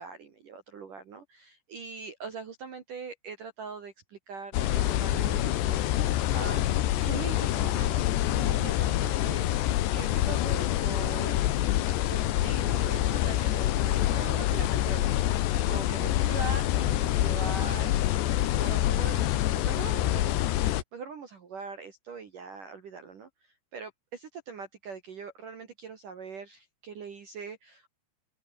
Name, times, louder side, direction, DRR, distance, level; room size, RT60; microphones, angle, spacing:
voice 1, 0.0-6.7 7.0-11.5 12.1-23.3 23.7-27.9, right 5 dB, 50° right, 3.2 m, -42 dB
sound 1, 4.5-20.8, left 13 dB, 65° left, 3.2 m, -26 dB
omnidirectional pair, 5.9 m